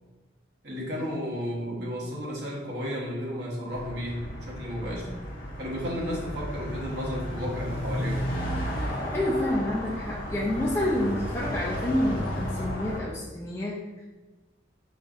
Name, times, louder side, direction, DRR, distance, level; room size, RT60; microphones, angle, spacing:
voice 1, 0.6-5.1 5.6-8.3, equal, 60° right, -5 dB, 1.0 m, -33 dB
sound 1, 3.7-13.0, equal, 50° left, 0.6 m, -33 dB
voice 2, 8.8-14.0, left 1 dB, 15° left, -6 dB, 0.3 m, -29 dB
5.1 x 2.5 x 2.4 m, 1.2 s
head